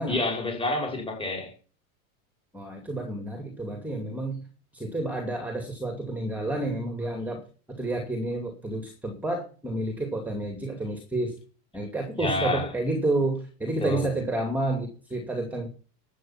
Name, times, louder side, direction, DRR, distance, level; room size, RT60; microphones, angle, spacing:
voice 1, 0.1-1.5 12.2-12.7 13.8-14.1, left 2 dB, 10° left, 5.4 m, -28 dB
voice 2, 2.5-4.4 4.7-7.4 7.8-11.4 11.7-15.7, right 2 dB, 5° right, 2.4 m, -30 dB
12.5 x 8.4 x 5.9 m
supercardioid pair, 150°, 45 cm